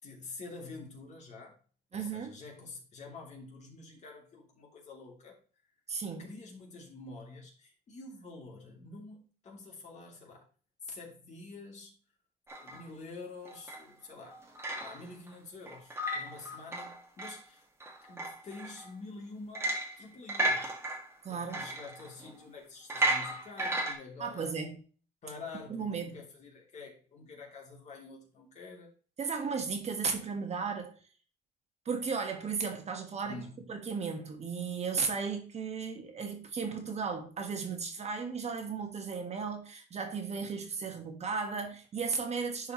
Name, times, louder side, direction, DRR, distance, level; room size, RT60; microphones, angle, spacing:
voice 1, 0.0-1.6 1.9-5.4 6.2-10.4 10.8-11.9 12.6-14.5 14.8-17.6 18.1-21.0 21.3-24.6 25.2-28.9 33.2-33.6, left 3 dB, 45° left, 3.1 m, -47 dB
voice 2, 1.9-2.4 5.9-6.2 21.2-21.6 24.2-24.8 25.7-26.2 29.2-31.0 31.8-33.4 33.7-42.7, right 5 dB, 40° right, 1.6 m, -35 dB
sound 1, 12.5-12.8 13.4-13.8 14.3-15.3 15.7-17.4 17.8-18.9 19.5-20.0 20.3-22.4 22.9-23.9, right 1 dB, 15° right, 1.8 m, -34 dB
10.5 x 4.7 x 3.1 m
cardioid pair, 110°, 17 cm